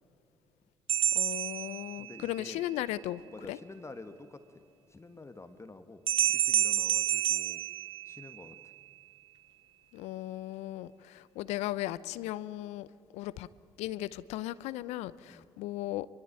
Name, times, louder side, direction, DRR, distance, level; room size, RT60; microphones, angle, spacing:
sound 1, 0.9-2.4 6.1-8.6, right 11 dB, 55° right, 0.5 m, -29 dB
voice 1, 1.1-3.2 3.5-3.6 9.9-12.9 13.1-13.5 13.8-16.1, left 15 dB, 75° left, 18 dB, 0.7 m, -36 dB
voice 2, 2.0-2.6 3.3-4.6 4.9-6.0 6.3-7.6 8.0-8.7 15.3-15.5, left 3 dB, 25° left, 9 dB, 1.6 m, -48 dB
23.5 x 22.5 x 8.8 m, 2.7 s
hypercardioid pair, 45°, 11 cm